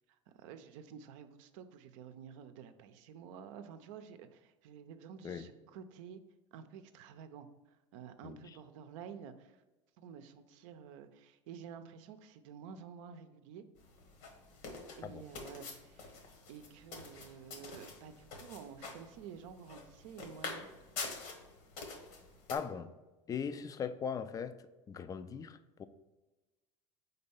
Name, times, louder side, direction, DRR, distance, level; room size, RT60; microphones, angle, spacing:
voice 1, 0.1-6.2 6.5-9.6 10.0-13.6 15.0-16.2 16.5-20.7, right 7 dB, 75° right, 9 dB, 0.6 m, -51 dB
sound 1, 13.8-22.5, left 4 dB, 70° left, 1.3 m, -47 dB
voice 2, 22.5-22.9 23.3-24.5 24.9-25.9, left 7 dB, 20° left, 12 dB, 0.3 m, -39 dB
4.3 x 4.0 x 5.5 m, 1.1 s
supercardioid pair, 110°, 16 cm